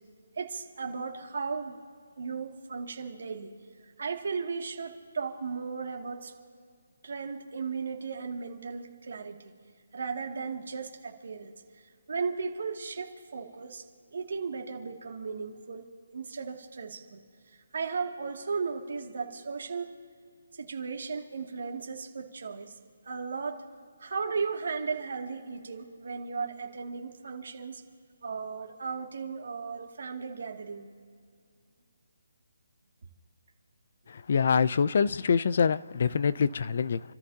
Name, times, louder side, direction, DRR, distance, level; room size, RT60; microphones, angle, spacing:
voice 1, 0.3-1.8 2.2-3.5 4.0-6.3 7.0-9.5 9.9-11.6 12.1-13.9 14.1-15.9 16.1-17.2 17.7-19.9 20.6-22.7 23.1-23.6 24.0-27.8 28.2-30.9, right 5 dB, 55° right, 1 dB, 2.3 m, -36 dB
voice 2, 34.1-37.0, left 6 dB, 45° left, 16 dB, 0.5 m, -25 dB
29.5 x 14.0 x 2.8 m, 2.3 s
hypercardioid pair, 175°, 0 cm